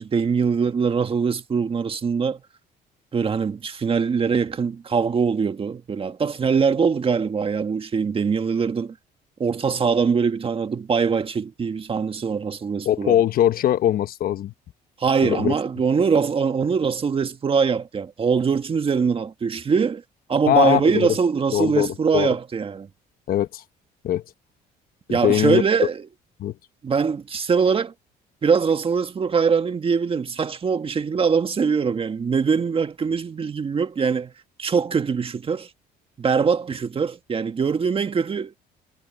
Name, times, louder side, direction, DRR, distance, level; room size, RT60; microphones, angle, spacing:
voice 1, 0.0-2.4 3.1-8.9 9.4-13.2 15.0-20.0 20.3-22.9 25.1-26.0 26.8-27.9 28.4-34.3 34.6-35.7 36.2-38.5, right 5 dB, 35° right, 1.7 m, -22 dB
voice 2, 12.8-14.5 15.2-15.5 20.5-21.1 21.5-22.3 23.3-23.6 24.0-24.2 25.1-25.6 26.4-26.5, left 11 dB, 60° left, 1.1 m, -21 dB
cardioid pair, 110°, 17 cm